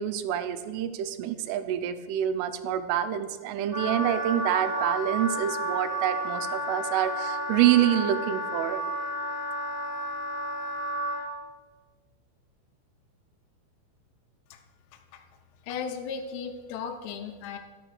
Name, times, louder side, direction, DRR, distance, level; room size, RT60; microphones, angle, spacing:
voice 1, 0.0-8.8, right 11 dB, 85° right, 10 dB, 3.1 m, -27 dB
Wind instrument woodwind instrument, 3.7-11.3, right 1 dB, 20° right, 1.7 m, -31 dB
voice 2, 14.9-15.2 15.6-17.6, left 6 dB, 90° left, 3 dB, 2.4 m, -36 dB
12.0 x 5.9 x 6.5 m, 1.4 s
omnidirectional pair, 5.8 m